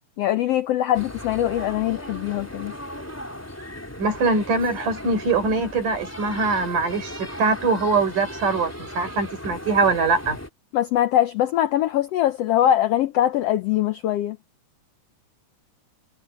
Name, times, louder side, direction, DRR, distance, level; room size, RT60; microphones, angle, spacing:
voice 1, 0.2-2.7 10.7-14.4, left 12 dB, 85° left, 1.4 m, -22 dB
sound 1, 0.9-10.5, left 1 dB, 5° left, 3.0 m, -37 dB
voice 2, 4.0-10.4, right 4 dB, 90° right, 6.0 m, -22 dB
omnidirectional pair, 3.6 m